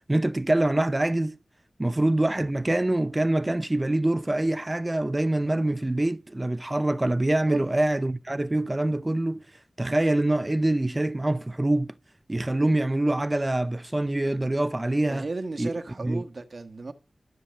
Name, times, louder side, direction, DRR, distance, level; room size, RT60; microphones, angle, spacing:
voice 1, 0.1-1.4 1.8-9.4 9.8-11.9 12.3-15.3 15.6-15.7 16.0-16.2, right 1 dB, 25° right, 0.5 m, -25 dB
voice 2, 15.1-16.9, right 3 dB, 60° right, 1.4 m, -34 dB
13.0 x 7.5 x 6.4 m
wide cardioid pair, 65°, 0 cm